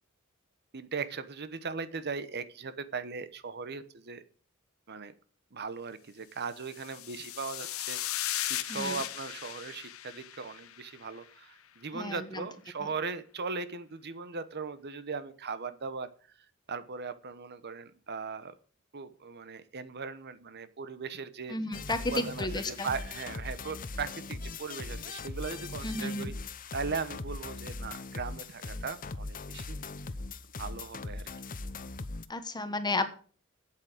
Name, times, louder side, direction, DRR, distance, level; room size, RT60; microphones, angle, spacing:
voice 1, 0.7-4.2 4.9-5.1 5.5-8.0 8.5-16.1 16.7-18.5 18.9-21.6 22.1-26.3 26.7-29.8 30.6-31.3, right 5 dB, 50° right, 13 dB, 1.0 m, -38 dB
sound 1, 6.6-11.1, left 13 dB, 70° left, 0.9 m, -37 dB
voice 2, 8.7-9.0 11.9-12.5 21.5-22.9 25.8-26.3 32.3-33.1, left 2 dB, 20° left, 10 dB, 1.2 m, -33 dB
sound 2, 21.7-32.3, left 3 dB, 40° left, 0.8 m, -40 dB
8.7 x 8.4 x 7.8 m, 0.42 s
head